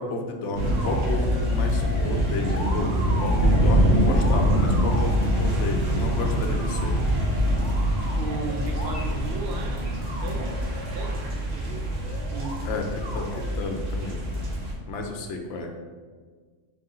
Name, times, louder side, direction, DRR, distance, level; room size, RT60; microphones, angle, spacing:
voice 1, 0.0-7.0 12.6-14.2 14.9-15.7, left 2 dB, 70° left, 3 dB, 0.9 m, -32 dB
sound 1, 0.6-5.2 5.9-9.4 9.8-11.2 12.0-12.6 12.9-13.5 15.2-15.3, equal, 5° left, 0.9 m, -38 dB
sound 2, 0.6-14.7, equal, 80° right, 1.2 m, -24 dB
voice 2, 8.2-10.6 10.9-11.2 11.5-11.9 12.3-12.6, right 3 dB, 60° right, 3 dB, 0.8 m, -35 dB
3.8 x 3.3 x 3.7 m, 1.5 s
omnidirectional pair, 1.3 m